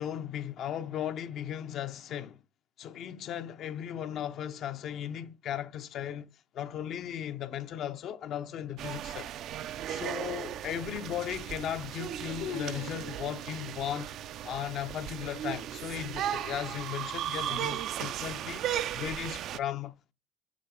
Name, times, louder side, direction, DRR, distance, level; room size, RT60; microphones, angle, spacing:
voice 1, 0.0-2.4 2.8-9.3 9.9-14.1 14.4-20.1, left 10 dB, 55° left, 0.7 m, -37 dB
sound 1, 8.8-19.6, right 11 dB, 55° right, 0.4 m, -36 dB
sound 2, 11.9-12.1 12.4-13.1 13.5-13.6 14.2-14.3 15.1-15.5, left 9 dB, 85° left, 1.4 m, -41 dB
7.5 x 3.4 x 4.7 m
supercardioid pair, 105°, 0 cm